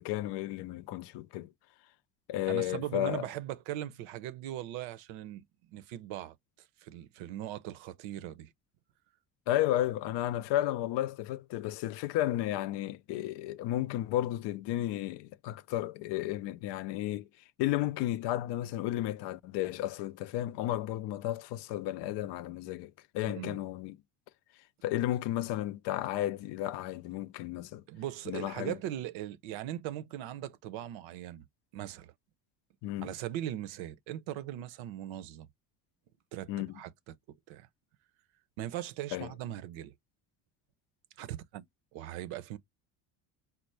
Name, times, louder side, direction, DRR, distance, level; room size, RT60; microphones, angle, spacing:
voice 1, 0.0-1.5 2.3-3.2 9.5-17.3 17.6-24.0 24.8-27.8 28.3-28.7 32.8-33.1 36.5-36.7 39.1-39.3, left 14 dB, 60° left, 0.5 m, -33 dB
voice 2, 2.5-5.5 5.7-6.3 6.8-8.5 23.3-23.6 27.9-31.5 31.7-32.1 33.0-35.5 36.3-36.9 37.3-37.7 38.6-39.9 41.2-41.7 41.9-42.6, right 12 dB, 70° right, 0.7 m, -39 dB
4.4 x 2.0 x 3.2 m
supercardioid pair, 80°, 49 cm